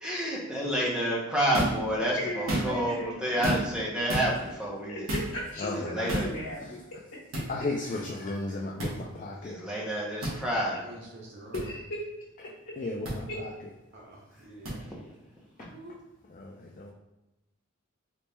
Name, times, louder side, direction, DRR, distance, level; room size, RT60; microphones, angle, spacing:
voice 1, 0.0-5.1 5.8-6.3 9.4-10.8, equal, 5° right, -5 dB, 0.6 m, -29 dB
sound 1, 1.5-1.8 2.3-2.9 3.4-3.8 4.1-4.3 5.1-5.3 6.1-6.3 7.3-7.5 8.8-8.9 10.2-10.4 11.5-11.6 13.0-13.2 14.7-14.8, right 1 dB, 75° right, 1.2 m, -30 dB
voice 2, 2.2-3.6 4.9-5.0 5.3-6.8 11.5-12.0, left 1 dB, 65° left, -6 dB, 1.0 m, -36 dB
voice 3, 5.6-6.0 6.6-6.8 7.5-9.6 12.4-13.7 15.6-15.7 16.3-16.9, left 2 dB, 35° left, -1 dB, 0.3 m, -35 dB
voice 4, 10.8-11.6 13.9-14.9 15.7-15.9, right 2 dB, 50° right, -3 dB, 0.6 m, -47 dB
4.0 x 3.2 x 2.2 m, 0.97 s
head